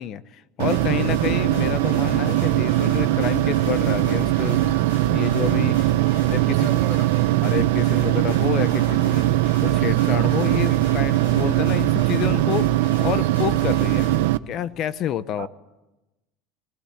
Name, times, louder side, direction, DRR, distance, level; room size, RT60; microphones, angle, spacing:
voice 1, 0.0-4.7 5.1-5.8 6.3-9.3 9.6-14.1 14.5-15.5, left 10 dB, 40° left, 16 dB, 0.7 m, -29 dB
sound 1, 0.6-14.4, right 17 dB, 90° right, 0.6 m, -21 dB
sound 2, 0.7-14.2, left 3 dB, 90° left, 6.4 m, -37 dB
voice 2, 6.0-7.5 8.5-9.1 15.4-15.5, right 14 dB, 60° right, 9 dB, 1.4 m, -38 dB
19.0 x 18.0 x 8.5 m, 1.0 s
cardioid pair, 150°, 0 cm